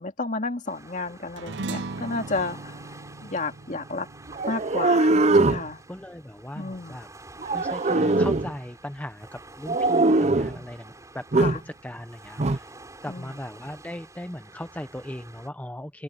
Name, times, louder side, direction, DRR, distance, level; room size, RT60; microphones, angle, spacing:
voice 1, 0.0-2.9 3.2-4.1 4.5-5.8 6.5-7.0 11.4-11.6 13.1-13.4, left 3 dB, 45° left, 2.3 m, -32 dB
Waves surf, 0.6-15.5, right 2 dB, 20° right, 5.8 m, -48 dB
sound 1, 1.4-6.0, right 3 dB, 85° right, 0.9 m, -38 dB
sound 2, 4.3-5.7 7.4-8.5 9.7-10.6 11.3-11.6 12.4-12.6, right 2 dB, 40° right, 0.7 m, -21 dB
voice 2, 5.9-7.1 7.5-11.3 11.6-12.7 13.0-16.0, left 1 dB, 10° left, 0.7 m, -38 dB
open air
head